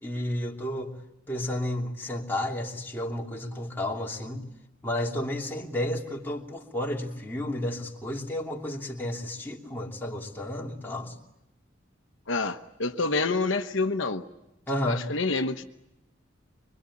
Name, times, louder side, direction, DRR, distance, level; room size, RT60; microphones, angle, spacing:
voice 1, 0.0-0.9 1.3-4.4 4.8-11.1 14.7-15.1, left 1 dB, 10° left, -2 dB, 2.9 m, -32 dB
voice 2, 12.3-14.2 14.8-15.6, left 3 dB, 75° left, 6 dB, 1.2 m, -27 dB
25.0 x 23.5 x 9.9 m, 0.89 s
head